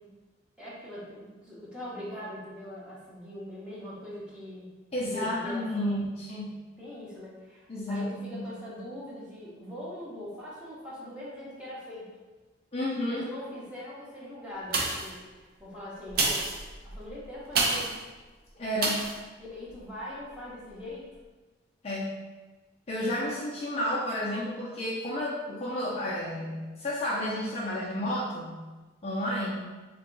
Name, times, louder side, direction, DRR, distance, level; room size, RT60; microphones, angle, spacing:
voice 1, 0.6-4.7 5.0-6.1 6.8-12.1 13.1-16.5 16.8-18.0 19.4-21.0, left 1 dB, 5° right, -9 dB, 0.8 m, -41 dB
voice 2, 4.9-6.5 7.7-8.1 8.3-8.4 12.7-13.2 18.6-19.0 21.8-22.2 22.9-28.5 29.0-29.7, left 1 dB, 30° left, -6 dB, 0.4 m, -31 dB
sound 1, 14.7-15.2 16.0-18.0 18.8-19.2 19.7-19.8, right 3 dB, 50° right, 0.5 m, -29 dB
2.7 x 2.3 x 3.8 m, 1.2 s
head